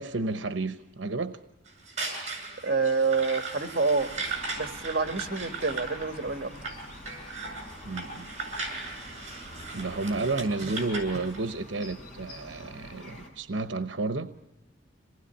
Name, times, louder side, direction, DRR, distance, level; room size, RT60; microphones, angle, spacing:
voice 1, 0.0-1.4 7.8-8.3 9.2-9.5 9.7-14.3, right 3 dB, 80° right, 10 dB, 0.9 m, -31 dB
sound 1, 1.7-11.4, right 3 dB, 40° right, 7.5 m, -37 dB
voice 2, 2.6-4.1 4.5-6.5, right 4 dB, 55° right, 8 dB, 1.7 m, -27 dB
sound 2, 4.0-13.3, left 1 dB, 40° left, 6.1 m, -47 dB
26.5 x 19.5 x 10.0 m, 0.99 s
head